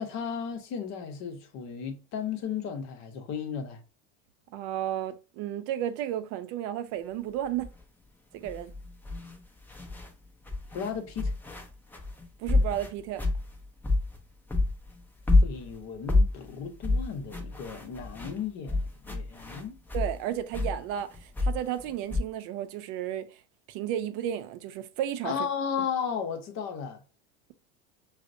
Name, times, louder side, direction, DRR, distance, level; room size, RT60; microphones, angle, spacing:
voice 1, 0.0-3.8 10.7-11.3 15.4-19.8 25.2-27.0, left 7 dB, 50° left, 0.8 m, -34 dB
voice 2, 4.5-7.7 8.3-8.7 12.4-13.2 19.9-23.3 23.7-25.4, right 11 dB, 60° right, 0.5 m, -33 dB
sound 1, 7.6-7.8 8.4-10.1 10.4-14.2 14.5-20.2 20.5-22.2, left 2 dB, 5° left, 0.5 m, -28 dB
4.9 x 2.0 x 2.5 m
supercardioid pair, 105°, 35 cm